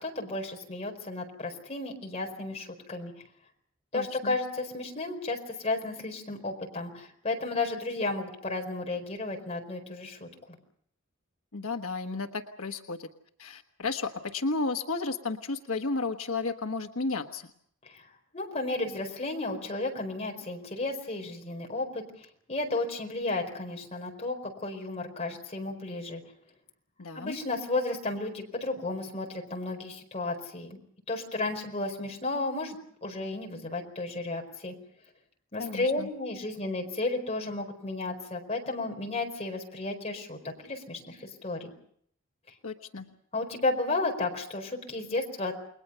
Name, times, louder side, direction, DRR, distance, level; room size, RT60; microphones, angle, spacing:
voice 1, 0.0-3.1 3.9-10.3 17.9-18.0 18.3-26.2 27.1-30.8 31.1-34.7 35.5-41.7 43.3-45.5, left 2 dB, 30° left, 2 dB, 4.7 m, -33 dB
voice 2, 3.9-4.3 11.5-13.1 13.4-17.5 27.0-27.4 35.6-36.1 42.6-43.1, left 3 dB, 85° left, 5 dB, 1.3 m, -33 dB
29.5 x 21.5 x 5.7 m, 0.66 s
head